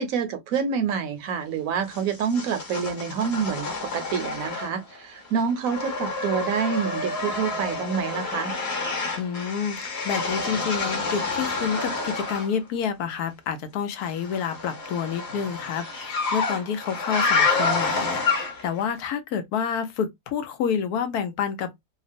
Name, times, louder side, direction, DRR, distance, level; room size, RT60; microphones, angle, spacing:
voice 1, 0.0-8.6, right 6 dB, 70° right, 1.0 m, -27 dB
sound 1, 1.9-5.0 5.2-12.5 14.1-18.8, left 3 dB, 45° left, 1.2 m, -28 dB
voice 2, 9.2-21.8, left 7 dB, 90° left, 1.2 m, -29 dB
2.9 x 2.0 x 2.5 m
omnidirectional pair, 1.6 m